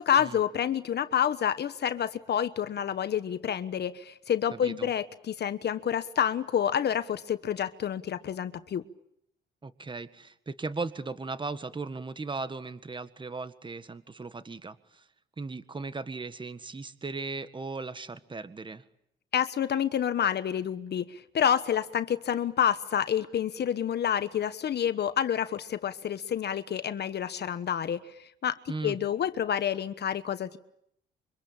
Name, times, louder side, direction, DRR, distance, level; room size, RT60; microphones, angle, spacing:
voice 1, 0.0-8.8 19.3-30.6, left 9 dB, 55° left, 12 dB, 1.2 m, -28 dB
voice 2, 4.5-4.9 9.6-15.1 15.4-18.8 28.7-29.0, right 3 dB, 25° right, 12 dB, 1.7 m, -37 dB
26.0 x 25.0 x 8.8 m, 0.74 s
cardioid pair, 90°, 20 cm